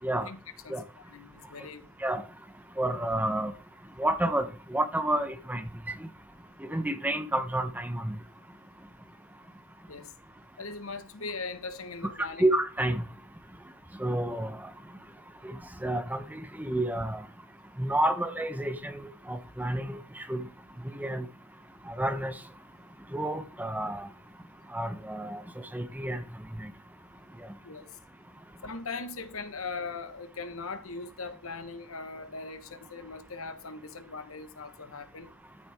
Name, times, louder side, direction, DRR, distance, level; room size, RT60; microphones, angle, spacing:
voice 1, 0.6-1.9 9.9-10.1 10.6-12.5 27.6-28.0 28.6-35.3, left 4 dB, 75° left, 1.4 m, -40 dB
voice 2, 2.8-3.5 4.0-5.7 6.6-8.1 12.4-13.0 14.0-14.6 15.4-17.2 17.8-20.4 20.9-21.3 21.9-22.3 23.1-24.1 24.7-25.4 25.7-26.2 26.6-26.7, right 1 dB, 10° right, 0.9 m, -30 dB
13.0 x 7.5 x 3.6 m
head